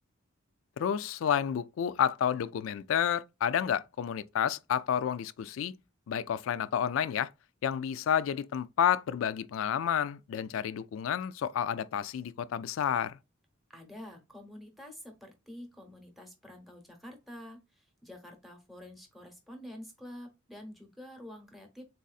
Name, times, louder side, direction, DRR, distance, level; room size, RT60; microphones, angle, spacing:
voice 1, 0.8-5.7 6.1-7.3 7.6-13.2, left 8 dB, 70° left, 0.3 m, -30 dB
voice 2, 13.7-21.8, left 1 dB, ahead, 0.9 m, -48 dB
4.0 x 2.6 x 2.3 m
head